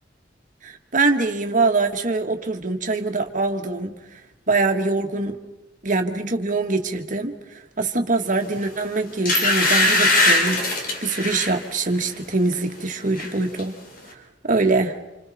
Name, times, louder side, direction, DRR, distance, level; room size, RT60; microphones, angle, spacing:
voice 1, 0.6-3.9 4.5-5.3 5.8-7.4 7.8-13.8 14.1-14.2 14.4-15.0, right 3 dB, 45° right, 5 dB, 1.7 m, -23 dB
sound 1, 8.6-8.7 9.3-11.6 12.0-12.3 12.6-13.3 13.6-13.7, left 2 dB, 55° left, 3.4 m, -20 dB
29.0 x 27.5 x 4.2 m, 1.0 s
head